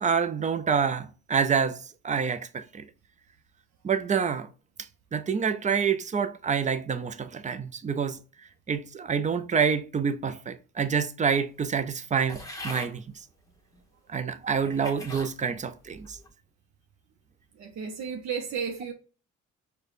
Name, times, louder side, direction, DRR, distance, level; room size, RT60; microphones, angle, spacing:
voice 1, 0.0-2.8 3.8-4.5 5.1-8.2 8.7-13.0 14.1-16.2, right 6 dB, 25° right, 0.4 m, -27 dB
sound 1, 12.3-12.9 13.7-13.8 14.5-15.3 15.9-16.3, left 1 dB, 10° left, 0.9 m, -40 dB
voice 2, 17.5-18.9, right 6 dB, 65° right, 0.6 m, -33 dB
4.7 x 2.2 x 2.4 m
cardioid pair, 90°, 30 cm